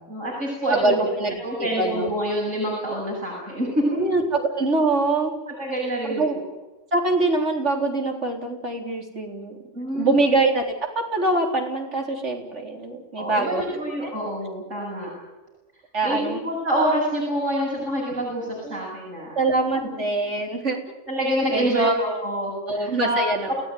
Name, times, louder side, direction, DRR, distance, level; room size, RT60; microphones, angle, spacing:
voice 1, 0.1-1.0 1.4-4.0 5.5-6.4 9.7-10.2 13.2-15.1 16.0-19.4 19.8-19.9 21.1-23.5, right 1 dB, 85° right, -4 dB, 8.2 m, -26 dB
voice 2, 0.7-2.1 3.9-5.3 6.0-6.4 6.9-9.6 9.9-10.6 10.9-13.6 14.0-14.1 15.9-16.4 18.6-18.8 19.4-20.8 21.5-22.0 22.7-23.5, right 2 dB, 70° right, 2 dB, 4.3 m, -24 dB
29.0 x 18.0 x 9.4 m, 1.1 s
omnidirectional pair, 1.3 m